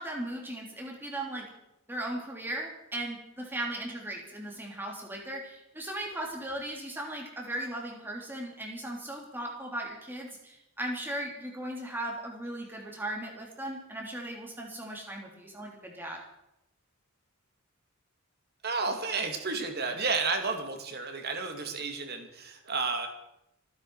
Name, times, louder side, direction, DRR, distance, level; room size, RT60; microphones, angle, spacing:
voice 1, 0.0-1.5 1.9-16.2, right 1 dB, 10° right, -1 dB, 3.2 m, -37 dB
voice 2, 18.6-23.1, right 4 dB, 45° right, 5 dB, 2.4 m, -31 dB
28.0 x 10.0 x 4.8 m, 0.85 s
head